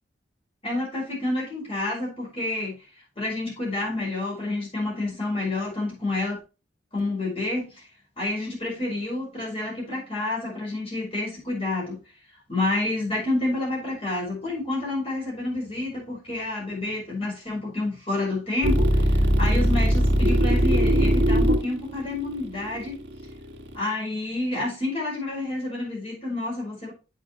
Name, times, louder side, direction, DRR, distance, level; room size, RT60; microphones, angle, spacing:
voice 1, 0.6-2.8 3.2-6.4 6.9-7.9 8.2-12.0 12.5-23.0 23.7-26.9, left 2 dB, 35° left, 5.5 m, -29 dB
sound 1, 18.6-23.8, equal, 80° right, 2.2 m, -21 dB
8.6 x 6.7 x 3.2 m
head